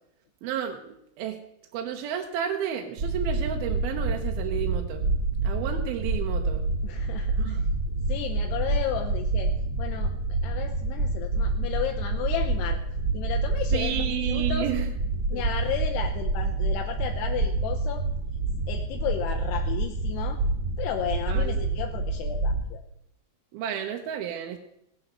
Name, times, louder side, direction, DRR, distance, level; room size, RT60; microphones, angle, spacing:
voice 1, 0.4-1.4 1.7-5.1 5.4-6.6 7.4-7.6 13.7-14.9 15.3-15.4 21.3-21.7 23.5-24.6, right 9 dB, 70° right, 3 dB, 2.7 m, -32 dB
sound 1, 3.0-22.6, right 3 dB, 35° right, 2.0 m, -27 dB
voice 2, 6.8-7.7 8.1-9.5 9.8-12.8 13.1-14.7 15.3-18.0 18.7-20.4 20.8-22.8, left 10 dB, 80° left, 3 dB, 3.0 m, -33 dB
17.0 x 10.0 x 6.8 m, 0.75 s
omnidirectional pair, 4.9 m